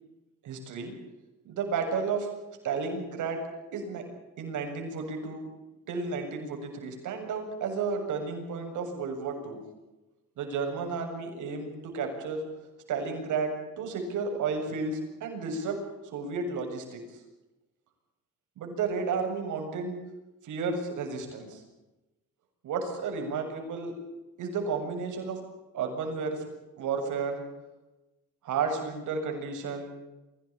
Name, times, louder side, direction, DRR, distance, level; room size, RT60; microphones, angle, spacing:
voice 1, 0.4-0.9 1.4-2.3 2.6-3.5 3.7-4.0 4.4-5.5 5.9-9.6 10.4-12.5 12.9-15.8 16.0-17.2 18.6-20.0 20.4-21.6 22.6-23.9 24.4-25.4 25.7-26.4 26.8-27.4 28.4-30.0, right 5 dB, 80° right, 4 dB, 7.6 m, -32 dB
24.5 x 18.0 x 8.8 m, 1.0 s
cardioid pair, 90°, 30 cm